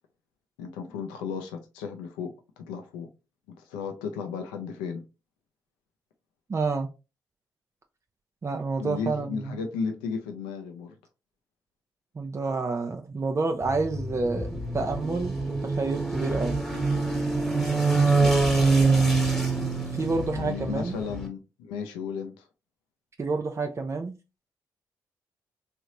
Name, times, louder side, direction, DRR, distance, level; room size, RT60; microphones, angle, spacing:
voice 1, 0.6-3.1 3.7-5.0 8.8-11.0 17.9-18.6 20.4-22.5, left 5 dB, 85° left, 0.5 m, -34 dB
voice 2, 6.5-6.9 8.4-9.6 12.2-16.6 19.9-21.0 23.2-24.2, right 3 dB, 35° right, 0.6 m, -29 dB
sound 1, 13.6-21.3, right 3 dB, 5° left, 1.4 m, -25 dB
3.3 x 2.6 x 2.9 m
hypercardioid pair, 40°, 8 cm